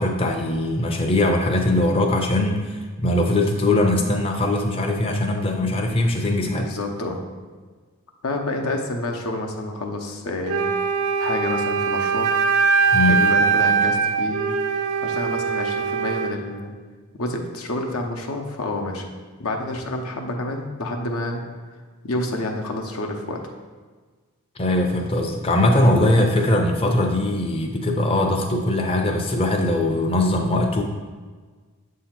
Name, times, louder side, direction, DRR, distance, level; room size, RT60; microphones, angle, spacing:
voice 1, 0.0-6.7 12.9-13.2 24.6-30.8, left 1 dB, 25° left, 2 dB, 0.5 m, -21 dB
voice 2, 6.5-7.2 8.2-10.7 11.2-12.3 13.1-14.5 15.0-16.7 17.1-19.1 19.4-21.4 22.0-23.4, left 2 dB, 85° left, 3 dB, 0.8 m, -28 dB
Wind instrument woodwind instrument, 10.5-16.4, right 5 dB, 85° right, 0.5 m, -21 dB
7.0 x 2.8 x 5.8 m, 1.4 s
head